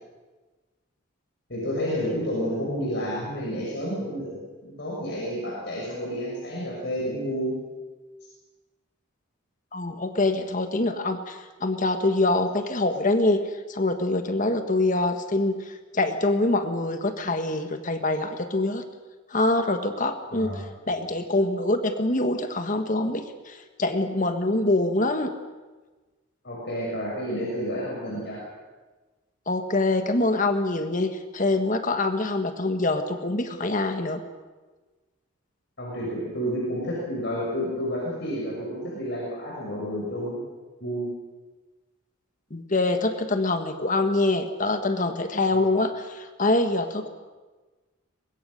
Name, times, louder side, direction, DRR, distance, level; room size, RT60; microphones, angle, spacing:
voice 1, 1.5-7.6 20.3-20.6 26.4-28.4 35.8-40.4 40.8-41.1, equal, 55° left, -4 dB, 6.3 m, -30 dB
voice 2, 9.7-13.4 13.7-18.8 19.3-25.3 29.5-34.2 42.5-47.1, left 2 dB, 40° left, 7 dB, 1.4 m, -25 dB
24.0 x 21.5 x 6.5 m, 1.3 s
head